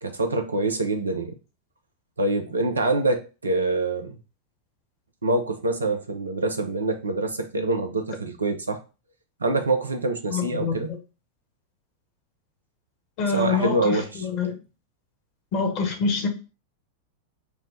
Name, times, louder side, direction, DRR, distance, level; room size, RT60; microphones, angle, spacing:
voice 1, 0.0-1.3 2.2-4.2 5.2-8.8 9.4-10.9 13.3-14.2, right 2 dB, 75° right, 0.6 m, -25 dB
voice 2, 10.3-10.8 13.2-14.5 15.5-16.3, left 5 dB, 45° left, 1.2 m, -25 dB
4.5 x 2.2 x 3.9 m
figure-of-eight pair, 90°, 0 cm